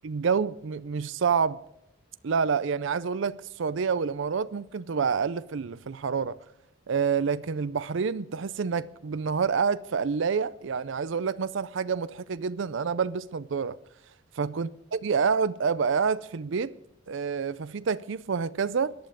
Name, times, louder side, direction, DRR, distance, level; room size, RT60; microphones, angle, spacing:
voice 1, 0.0-1.6 2.2-6.4 6.9-13.8 14.4-16.7 17.1-18.9, right 6 dB, 65° right, 0.5 m, -28 dB
18.0 x 11.5 x 5.0 m
head